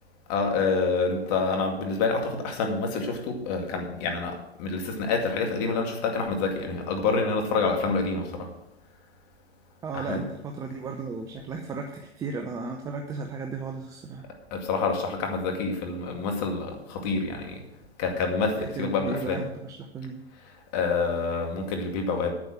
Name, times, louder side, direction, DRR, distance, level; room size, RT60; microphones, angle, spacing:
voice 1, 0.3-8.5 9.9-10.2 14.3-17.6 18.0-19.4 20.7-22.3, left 4 dB, 35° left, 3 dB, 2.3 m, -27 dB
voice 2, 9.8-14.2 18.6-20.2, right 4 dB, 10° right, 4 dB, 0.6 m, -35 dB
9.6 x 6.9 x 7.6 m, 0.86 s
figure-of-eight pair, 120°, 33 cm